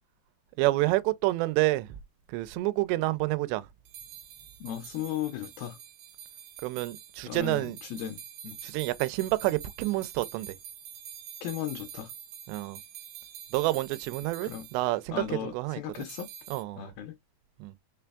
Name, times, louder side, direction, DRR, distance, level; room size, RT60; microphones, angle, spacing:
voice 1, 0.6-1.9 2.3-3.7 6.6-7.8 8.6-10.5 12.5-12.8 13.5-16.1 16.5-16.9 17.6-17.7, right 19 dB, 90° right, 2.7 m, -28 dB
sound 1, 3.9-15.0 15.9-16.6, right 9 dB, 70° right, 2.2 m, -46 dB
voice 2, 4.6-5.8 7.3-8.6 11.4-12.1 14.4-14.7 15.1-16.3 16.8-17.1, left 11 dB, 85° left, 2.1 m, -36 dB
6.1 x 3.4 x 2.2 m
omnidirectional pair, 4.8 m